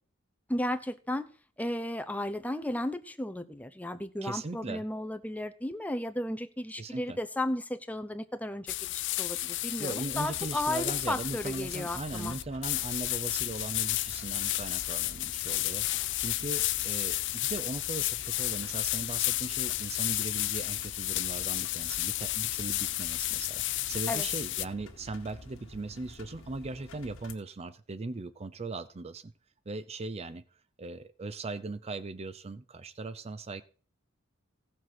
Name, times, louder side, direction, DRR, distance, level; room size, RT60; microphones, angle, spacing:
voice 1, 0.5-1.3 1.6-12.4 24.1-24.3, left 1 dB, 5° left, 8 dB, 0.8 m, -34 dB
voice 2, 4.2-4.8 6.8-7.2 9.8-15.8 16.2-29.3 29.7-30.4 30.8-33.6, right 3 dB, 30° right, 13 dB, 0.5 m, -39 dB
sound 1, 8.7-24.7, left 17 dB, 60° left, 0.5 m, -32 dB
sound 2, 10.1-27.3, left 2 dB, 80° left, 1.9 m, -50 dB
16.0 x 7.4 x 6.0 m, 0.42 s
head